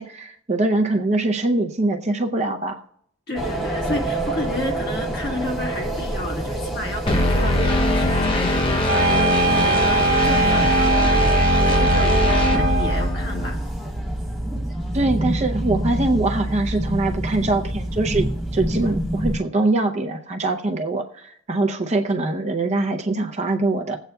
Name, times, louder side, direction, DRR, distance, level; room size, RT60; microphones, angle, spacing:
voice 1, 0.0-2.8 14.9-24.0, right 2 dB, 35° right, 3 dB, 0.6 m, -23 dB
voice 2, 3.3-13.6, left 1 dB, 50° left, 0 dB, 1.6 m, -31 dB
sound 1, 3.3-19.4, right 1 dB, ahead, 1.6 m, -27 dB
sound 2, 7.1-13.5, left 1 dB, 25° left, 0.8 m, -21 dB
sound 3, 8.9-13.1, right 4 dB, 85° right, 0.7 m, -22 dB
20.5 x 8.1 x 2.3 m, 0.67 s
head